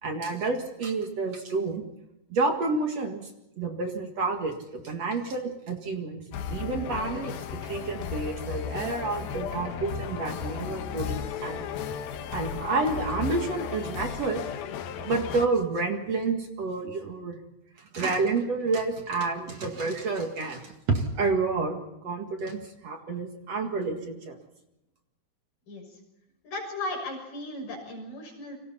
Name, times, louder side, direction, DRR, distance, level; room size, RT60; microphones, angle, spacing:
voice 1, 0.0-1.8 2.3-3.3 3.6-6.2 6.5-11.6 12.3-14.4 15.0-17.4 17.8-24.4, right 3 dB, 50° right, 4 dB, 2.7 m, -29 dB
sound 1, 6.3-15.5, left 7 dB, 90° left, 3.1 m, -35 dB
voice 2, 25.7-26.0 26.4-28.6, left 2 dB, 70° left, 1 dB, 8.2 m, -36 dB
30.0 x 25.0 x 4.3 m, 0.91 s
omnidirectional pair, 4.1 m